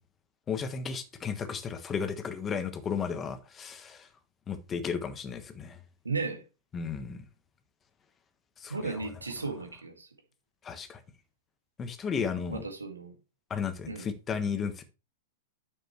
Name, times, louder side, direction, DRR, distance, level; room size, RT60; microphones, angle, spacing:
voice 1, 0.5-4.1 4.5-5.8 6.7-7.2 8.6-9.0 10.6-11.0 11.8-12.6 13.5-14.8, left 6 dB, 25° left, 1.3 m, -34 dB
voice 2, 6.0-6.4 8.7-10.1 12.5-13.1 13.9-14.1, right 4 dB, 85° right, 1.9 m, -35 dB
9.2 x 6.7 x 3.2 m
figure-of-eight pair, 100°, 0 cm